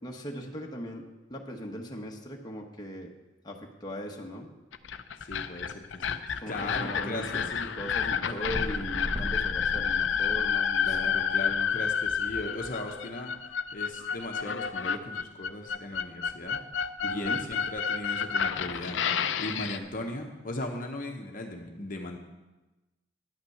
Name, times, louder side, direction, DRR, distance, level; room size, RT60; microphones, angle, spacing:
voice 1, 0.0-1.0 1.3-3.1 3.4-4.5 6.4-7.5 7.8-11.1 17.0-17.4, equal, 20° left, 0 dB, 1.1 m, -39 dB
sound 1, 4.7-19.8, left 7 dB, 65° left, 0.5 m, -30 dB
voice 2, 5.2-7.7 8.2-8.4 10.8-16.6 17.1-22.2, left 1 dB, 45° left, 3 dB, 1.0 m, -38 dB
sound 2, 8.4-12.2 12.8-12.9, equal, 20° right, 1.4 m, -38 dB
10.5 x 5.9 x 7.8 m, 1.1 s
head